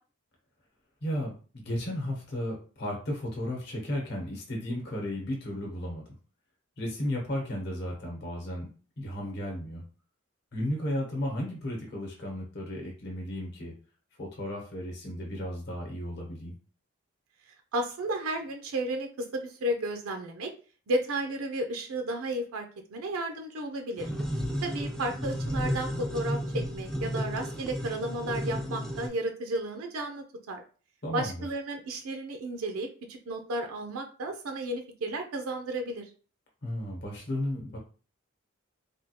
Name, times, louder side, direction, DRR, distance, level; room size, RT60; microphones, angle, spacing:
voice 1, 1.0-6.0 6.8-8.7 9.0-9.8 10.5-13.7 14.2-16.5 25.0-25.1 31.0-31.4 36.6-37.8, left 1 dB, 50° left, -1 dB, 0.9 m, -34 dB
voice 2, 17.7-20.5 20.9-22.7 22.9-24.1 24.6-30.6 31.1-36.1, right 1 dB, 75° right, 5 dB, 0.5 m, -33 dB
sound 1, 24.0-29.1, equal, 5° left, 0.3 m, -33 dB
3.5 x 2.3 x 2.8 m, 0.38 s
head